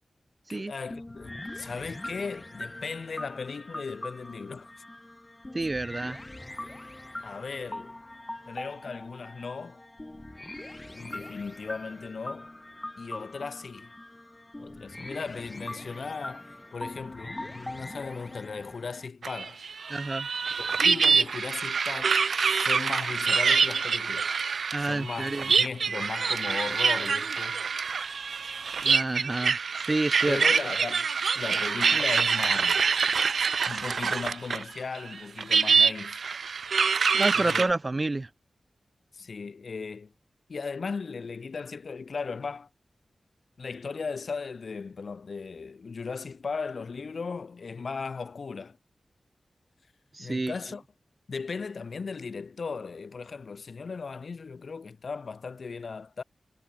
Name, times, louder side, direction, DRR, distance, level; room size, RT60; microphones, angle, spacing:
voice 1, 0.5-4.7 7.2-8.0 8.5-9.8 10.9-12.5 13.0-13.9 14.6-19.6 20.6-24.3 24.8-27.6 30.3-32.9 33.6-36.2 37.3-37.7 39.1-40.1 40.5-42.7 43.6-48.8 50.2-50.8 51.3-56.2, left 5 dB, 65° left, 2.3 m, -37 dB
sound 1, 0.9-19.1, left 1 dB, 20° left, 3.0 m, -42 dB
voice 2, 5.5-6.2 19.9-20.3 24.7-25.5 28.8-30.4 37.1-38.3 50.1-50.5, right 2 dB, 30° right, 2.7 m, -29 dB
sound 2, 19.2-34.7 34.9-37.7, right 5 dB, 80° right, 1.3 m, -25 dB
wide cardioid pair, 100°, 0 cm